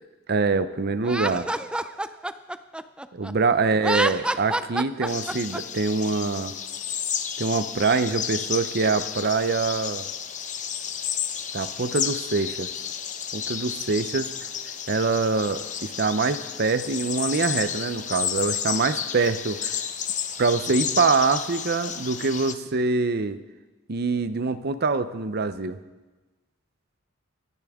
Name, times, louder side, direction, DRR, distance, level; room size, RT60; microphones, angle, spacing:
voice 1, 0.3-1.5 3.1-6.5 7.4-10.1 11.5-12.7 13.3-14.3 14.9-19.7 20.4-23.4 23.9-25.8, right 4 dB, 50° right, 12 dB, 0.7 m, -24 dB
Laughter, 1.0-3.3 3.7-5.6, right 1 dB, 5° right, 0.4 m, -27 dB
sound 1, 5.1-22.5, left 8 dB, 40° left, 0.8 m, -32 dB
25.0 x 10.5 x 3.6 m, 1.2 s
head